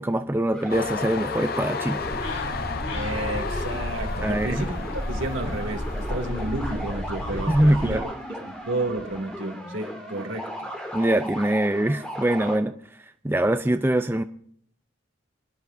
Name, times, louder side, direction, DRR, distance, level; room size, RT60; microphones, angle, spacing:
voice 1, 0.0-2.0 4.2-4.6 7.5-8.1 10.9-12.7 13.2-14.2, right 1 dB, 10° right, 0.5 m, -23 dB
sound 1, 0.5-12.6, equal, 5° left, 3.8 m, -36 dB
Train, 0.7-8.1 8.5-9.3, left 5 dB, 50° left, 0.6 m, -35 dB
sound 2, 2.0-8.0, equal, 85° left, 4.2 m, -32 dB
voice 2, 2.9-4.8 5.1-8.1 8.4-10.7, right 2 dB, 75° right, 2.6 m, -31 dB
28.0 x 10.5 x 2.6 m
head